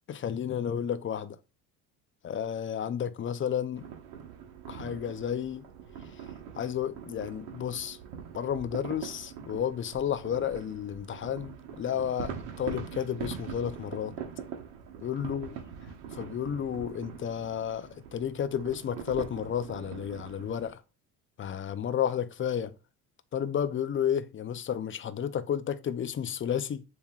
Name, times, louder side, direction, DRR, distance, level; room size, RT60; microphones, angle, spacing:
voice 1, 0.1-1.4 2.2-3.8 4.7-5.7 6.6-8.0 8.3-14.1 15.0-15.5 16.2-20.8 21.4-22.7 23.3-26.8, left 9 dB, 30° left, 0.5 m, -32 dB
sound 1, 3.8-20.7, right 7 dB, 70° right, 1.4 m, -43 dB
7.1 x 2.9 x 2.4 m
hypercardioid pair, 70°, 44 cm